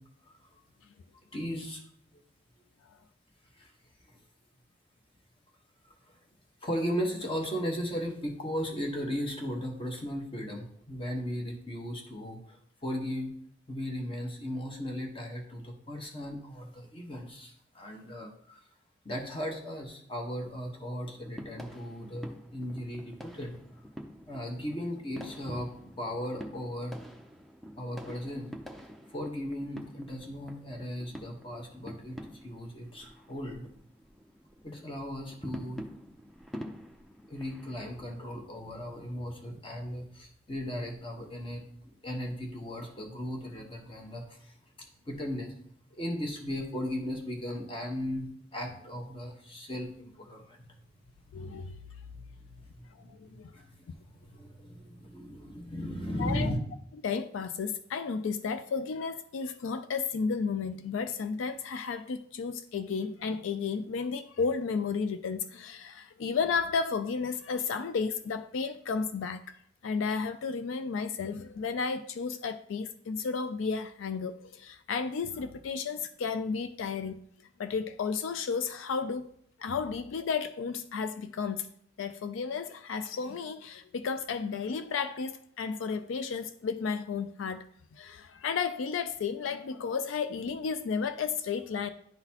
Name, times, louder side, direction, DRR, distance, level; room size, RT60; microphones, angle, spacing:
voice 1, 1.3-1.8 3.6-3.7 6.1-6.2 6.6-13.3 13.7-18.6 19.0-23.6 24.3-25.7 26.0-27.0 27.8-28.5 29.1-33.7 34.6-35.8 37.3-41.7 42.0-44.5 45.0-45.5 45.9-50.8 52.7-53.1 53.5-56.6, equal, 25° left, 1.1 m, -36 dB
sound 1, 21.2-38.2, equal, ahead, 0.5 m, -47 dB
voice 2, 51.3-51.8 53.0-53.5 56.2-56.5 57.0-69.6 69.8-77.2 77.6-79.3 79.6-81.7 82.0-87.7 87.9-91.9, left 5 dB, 80° left, 0.4 m, -33 dB
10.5 x 3.9 x 2.9 m
head